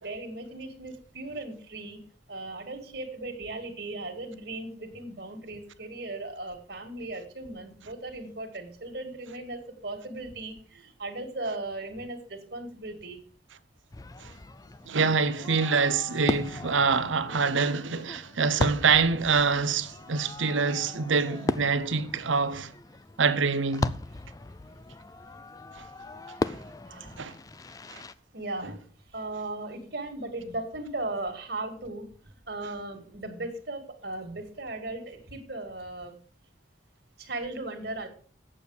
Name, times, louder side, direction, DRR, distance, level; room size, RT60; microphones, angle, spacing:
voice 1, 0.0-2.0 2.3-13.2 26.8-27.3 28.3-28.8 29.1-36.2 37.2-38.1, right 2 dB, 60° right, 2.2 m, -37 dB
Fireworks, 13.9-28.1, left 2 dB, 20° left, 0.4 m, -37 dB
voice 2, 14.9-22.7 23.2-24.0 25.8-25.9 26.5-26.6 27.2-27.3 27.9-28.0, right 5 dB, 85° right, 0.8 m, -25 dB
8.7 x 7.1 x 6.4 m
head